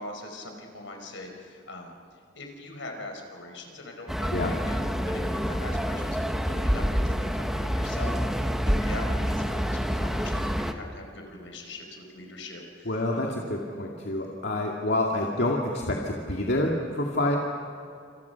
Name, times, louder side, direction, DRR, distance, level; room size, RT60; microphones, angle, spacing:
voice 1, 0.0-13.5 15.1-15.3, left 2 dB, 75° left, 3 dB, 5.0 m, -42 dB
sound 1, 4.1-10.7, equal, ahead, 1.2 m, -27 dB
voice 2, 12.9-17.4, left 1 dB, 60° left, -1 dB, 2.3 m, -27 dB
28.0 x 27.5 x 5.9 m, 2.5 s
head